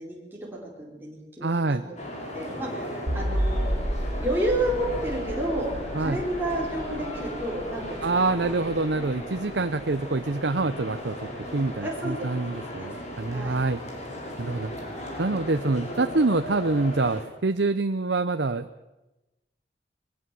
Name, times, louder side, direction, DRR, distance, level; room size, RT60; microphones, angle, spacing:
voice 1, 0.0-1.8 2.3-3.7 4.2-5.7 6.0-8.2 11.8-12.1 12.8-12.9 13.3-13.6, right 1 dB, 10° right, -4 dB, 4.6 m, -30 dB
voice 2, 1.4-1.9 5.9-6.2 8.0-13.8 14.4-14.7 15.2-18.7, right 3 dB, 70° right, 9 dB, 0.8 m, -26 dB
sound 1, 2.0-17.2, left 1 dB, 40° left, 6.5 m, -36 dB
sound 2, 3.1-10.3, equal, 90° right, 2.2 m, -32 dB
22.5 x 21.0 x 7.7 m, 1.0 s
head